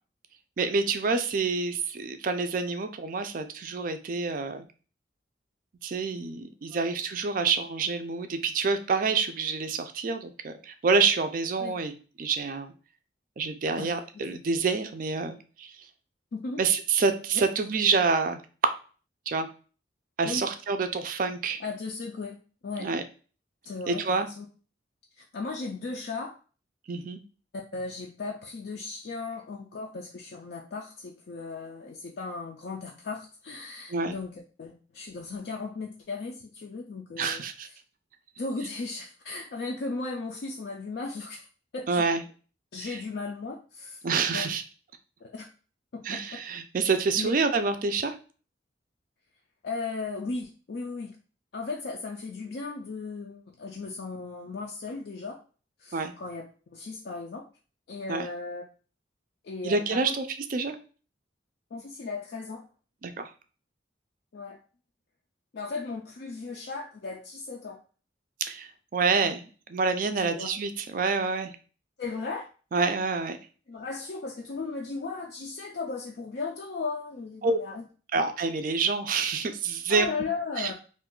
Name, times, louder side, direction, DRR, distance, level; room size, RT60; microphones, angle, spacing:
voice 1, 0.6-4.6 5.8-11.9 12.2-12.7 13.4-15.7 16.6-18.7 19.3-19.5 20.2-21.6 22.8-23.0 23.9-24.3 26.9-27.2 33.9-34.1 37.2-37.7 41.9-42.2 42.8-43.0 44.0-44.6 46.0-48.1 55.9-56.1 58.1-58.3 59.6-60.8 63.0-63.3 68.4-71.5 72.7-73.4 77.4-77.6 78.1-80.1 80.6-80.7, right 4 dB, 45° right, 8 dB, 0.3 m, -27 dB
voice 2, 21.6-22.9 23.6-24.5 25.2-26.4 27.7-37.8 38.4-41.5 41.7-42.1 42.7-44.0 44.3-44.5 45.2-45.5 45.9-46.4 47.2-47.3 49.6-51.2 51.5-55.4 55.8-57.4 57.9-58.6 59.4-60.1 61.7-62.7 64.3-64.6 65.5-67.8 70.2-70.5 72.0-72.5 73.7-77.8 79.9-80.7, left 4 dB, 60° left, 0 dB, 0.4 m, -36 dB
2.5 x 2.3 x 3.6 m, 0.37 s
head